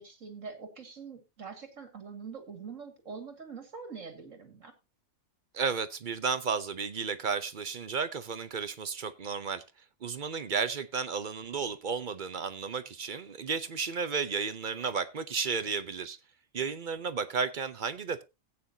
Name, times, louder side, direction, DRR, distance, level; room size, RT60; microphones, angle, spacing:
voice 1, 0.0-4.7, right 5 dB, 65° right, 2.6 m, -44 dB
voice 2, 5.5-9.6 10.0-16.2 16.5-18.2, right 5 dB, 45° right, 0.7 m, -33 dB
17.0 x 8.8 x 2.8 m
omnidirectional pair, 1.4 m